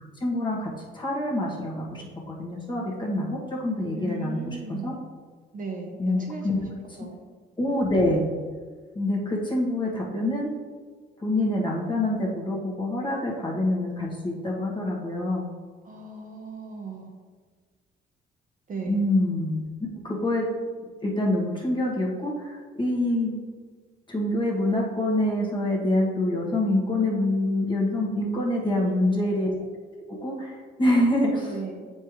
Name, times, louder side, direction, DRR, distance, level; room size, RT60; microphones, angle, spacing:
voice 1, 0.2-4.9 6.0-6.6 7.6-8.3 8.9-10.5 11.2-15.5 18.9-20.5 21.0-23.4 24.1-29.5 30.1-31.5, left 1 dB, 25° left, -3 dB, 1.5 m, -26 dB
voice 2, 3.9-4.9 5.5-7.2 15.8-17.1 18.7-19.0 28.6-29.3 31.4-31.8, right 4 dB, 40° right, 1 dB, 1.0 m, -37 dB
7.4 x 4.5 x 3.2 m, 1.5 s
cardioid pair, 90°, 20 cm